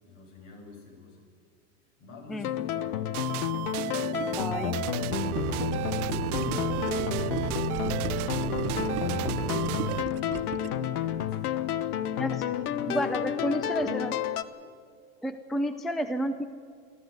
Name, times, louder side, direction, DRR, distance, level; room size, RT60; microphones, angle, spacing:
voice 1, 0.0-1.2 2.0-3.1 3.8-4.5 6.0-7.2 8.2-10.7 11.0-11.7 12.5-13.9, left 3 dB, 60° left, 1 dB, 7.9 m, -47 dB
sound 1, 2.4-14.4, left 10 dB, 85° left, 1.2 m, -31 dB
sound 2, 3.1-10.0, right 18 dB, 85° right, 0.7 m, -33 dB
Gurgling, 3.8-10.9, right 10 dB, 35° right, 1.4 m, -39 dB
voice 2, 4.4-4.8 12.2-12.4 12.9-14.2 15.2-16.5, equal, ahead, 10 dB, 0.5 m, -30 dB
28.0 x 12.5 x 8.0 m, 2.2 s
supercardioid pair, 135°, 43 cm